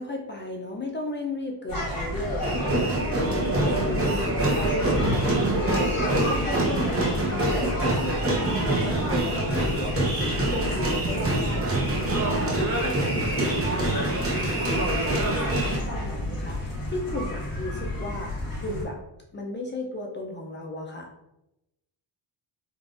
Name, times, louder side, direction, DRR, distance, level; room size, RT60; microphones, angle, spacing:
voice 1, 0.0-18.3 18.6-19.0 19.3-21.1, left 1 dB, 25° left, 1 dB, 0.3 m, -34 dB
sound 1, 1.7-18.8, left 1 dB, 45° left, 1.1 m, -32 dB
sound 2, 2.4-15.8, right 2 dB, 30° right, 0.7 m, -26 dB
sound 3, 3.7-6.3 6.9-7.0, left 2 dB, 85° left, 0.6 m, -35 dB
3.7 x 2.4 x 2.4 m, 0.90 s
wide cardioid pair, 150°, 47 cm